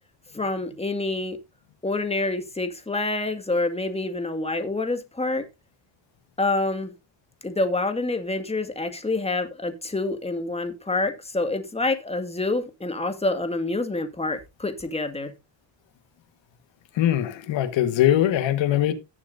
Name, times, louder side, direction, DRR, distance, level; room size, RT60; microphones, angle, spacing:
voice 1, 0.3-1.4 1.8-5.4 6.4-6.9 7.4-15.3, left 2 dB, 15° left, 2.0 m, -27 dB
voice 2, 17.0-18.9, left 11 dB, 75° left, 1.6 m, -21 dB
17.5 x 7.2 x 2.7 m
cardioid pair, 100°, 45 cm